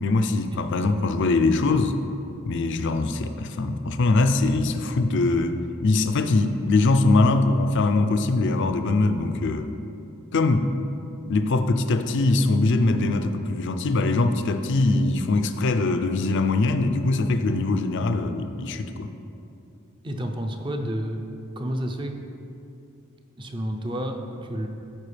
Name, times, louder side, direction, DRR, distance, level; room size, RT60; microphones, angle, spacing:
voice 1, 0.0-2.0 2.5-5.6 5.8-9.7 10.3-10.7 11.3-19.1, left 2 dB, 60° left, 8 dB, 0.5 m, -22 dB
voice 2, 20.0-21.3 21.6-22.2 23.4-24.7, equal, 25° right, 4 dB, 0.6 m, -30 dB
13.5 x 4.6 x 3.3 m, 2.7 s
head